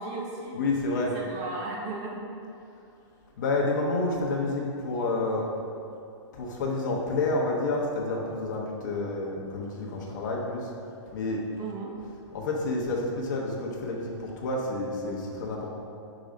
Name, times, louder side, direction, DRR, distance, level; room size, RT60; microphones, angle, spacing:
voice 1, 0.0-0.6 1.1-2.2 11.6-11.9, right 3 dB, 15° right, -1 dB, 0.6 m, -35 dB
voice 2, 0.5-1.2 3.4-5.5 6.3-10.7 11.1-11.4 12.3-15.7, left 2 dB, 40° left, -2 dB, 1.0 m, -29 dB
5.0 x 3.9 x 5.2 m, 2.6 s
hypercardioid pair, 175°, 15 cm